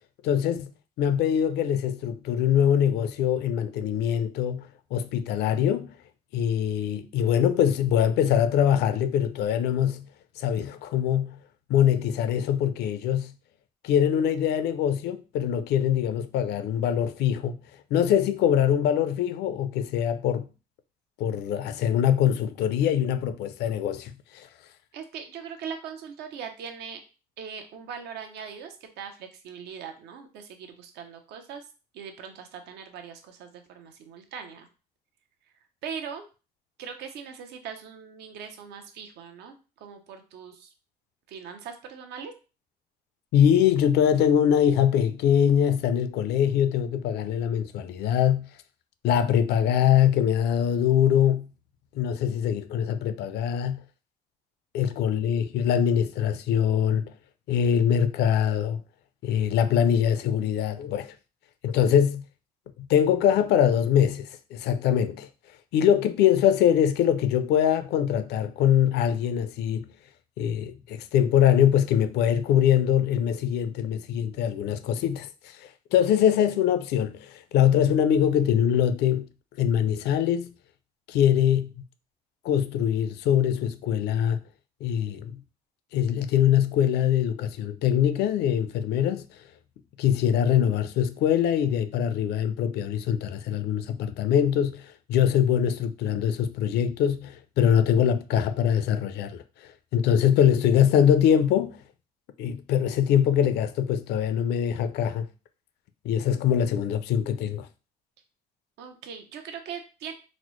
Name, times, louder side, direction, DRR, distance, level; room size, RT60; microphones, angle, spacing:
voice 1, 0.2-0.7 1.0-5.9 6.3-10.1 10.4-11.4 11.7-13.3 13.8-17.6 17.9-20.5 21.2-24.5 43.3-48.5 49.0-51.5 51.9-53.8 54.7-57.1 57.5-58.8 59.2-61.1 61.6-62.2 62.8-65.3 65.7-69.9 70.4-79.3 79.6-80.5 81.1-81.7 82.4-84.4 84.8-85.4 85.9-89.2 90.0-94.8 95.1-99.4 99.9-101.8 102.4-105.3 106.0-107.7, left 9 dB, 75° left, 0.4 m, -23 dB
voice 2, 24.9-27.0 27.4-31.7 31.9-34.7 35.8-36.3 36.8-40.7 41.3-42.3 54.8-55.2 108.8-110.1, right 7 dB, 80° right, 0.7 m, -40 dB
4.1 x 2.0 x 3.0 m
cardioid pair, 110°, 17 cm